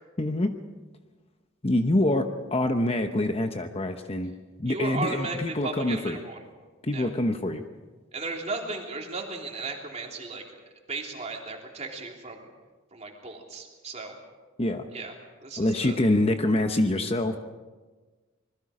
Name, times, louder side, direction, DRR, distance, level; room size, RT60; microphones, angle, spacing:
voice 1, 0.2-0.5 1.6-4.3 4.6-6.2 6.8-7.6 14.6-14.9 15.6-17.4, left 1 dB, 30° left, 7 dB, 0.9 m, -25 dB
voice 2, 4.7-6.4 6.9-7.1 8.1-10.4 10.9-12.5 12.9-14.1 14.9-15.1 15.4-16.0, right 3 dB, 35° right, 1 dB, 3.1 m, -35 dB
26.0 x 21.0 x 5.0 m, 1.3 s
head